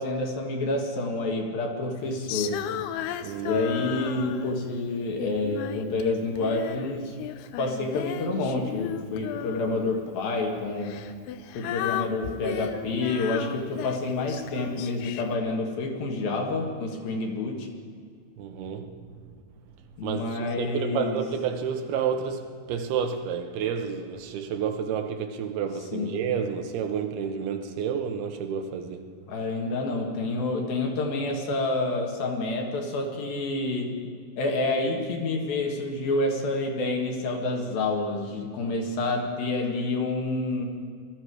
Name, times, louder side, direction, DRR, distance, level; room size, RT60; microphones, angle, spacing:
voice 1, 0.0-2.6 3.5-7.2 7.6-11.0 11.5-17.7 20.0-21.2 25.9-26.1 29.3-34.0 34.4-40.7, left 2 dB, 70° left, 3.4 m, -28 dB
Female singing, 2.3-4.7 5.2-6.9 7.2-10.0 10.8-15.4, left 11 dB, 85° left, 2.7 m, -35 dB
voice 2, 3.2-3.6 18.4-19.4 20.0-29.2, right 7 dB, 80° right, 3.0 m, -30 dB
21.0 x 13.5 x 4.8 m
omnidirectional pair, 4.5 m